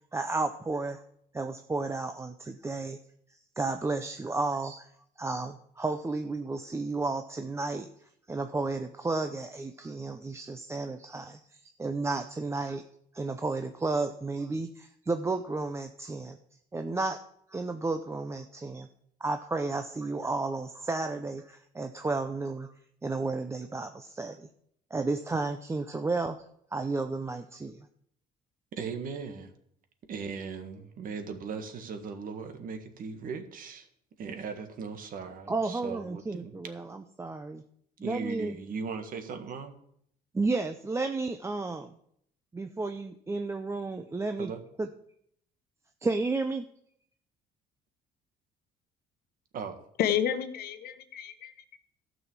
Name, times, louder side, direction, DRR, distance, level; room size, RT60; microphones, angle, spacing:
voice 1, 0.1-1.0 1.3-3.0 3.6-4.9 5.2-7.9 8.3-11.4 11.8-12.8 13.1-16.4 16.7-17.2 17.5-18.9 19.2-22.7 23.0-24.5 24.9-26.4 26.7-27.9 35.5-37.6 38.0-38.5 40.3-41.9 42.5-44.5 44.8-44.9 46.0-46.7, right 3 dB, 15° right, 7 dB, 0.6 m, -32 dB
voice 2, 28.7-29.5 30.1-33.9 34.2-36.5 38.0-39.8 44.4-44.6 49.5-49.8, right 5 dB, 55° right, 6 dB, 1.8 m, -38 dB
voice 3, 50.0-51.8, left 9 dB, 65° left, 10 dB, 1.1 m, -30 dB
12.5 x 6.2 x 7.3 m, 0.70 s
cardioid pair, 110°, 17 cm